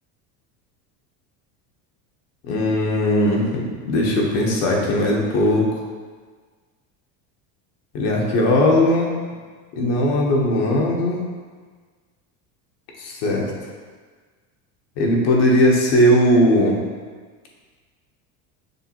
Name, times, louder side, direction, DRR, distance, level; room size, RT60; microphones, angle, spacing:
voice 1, 2.4-5.7 7.9-9.1 9.7-11.2 13.0-13.5 15.0-16.8, left 1 dB, 70° left, -2 dB, 1.1 m, -18 dB
6.5 x 2.6 x 2.9 m, 1.5 s
supercardioid pair, 130°, 40 cm